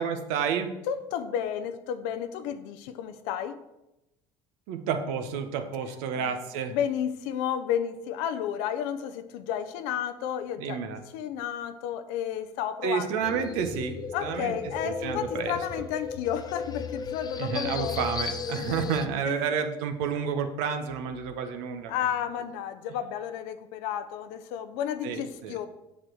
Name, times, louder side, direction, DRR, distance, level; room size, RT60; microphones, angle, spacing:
voice 1, 0.0-0.7 4.7-6.8 10.6-11.0 12.8-14.5 14.8-15.6 17.4-21.9 25.0-25.6, right 7 dB, 75° right, 7 dB, 1.1 m, -30 dB
voice 2, 0.9-3.6 6.2-6.3 6.7-10.8 11.1-13.1 14.1-18.1 18.5-18.8 19.2-19.5 21.9-25.7, left 9 dB, 75° left, 9 dB, 0.6 m, -32 dB
sound 1, 13.2-19.1, left 6 dB, 30° left, 0.7 m, -35 dB
7.6 x 6.7 x 4.7 m, 0.93 s
supercardioid pair, 85°, 13 cm